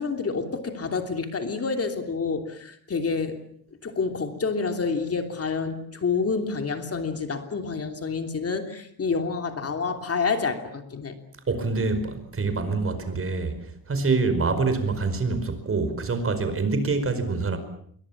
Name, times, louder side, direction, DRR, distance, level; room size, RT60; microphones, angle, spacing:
voice 1, 0.0-3.4 3.8-11.1, left 4 dB, 40° left, 3.1 m, -28 dB
voice 2, 11.5-13.6 13.9-17.6, right 3 dB, 35° right, 4.9 m, -25 dB
27.5 x 23.0 x 7.3 m
cardioid pair, 130°, 38 cm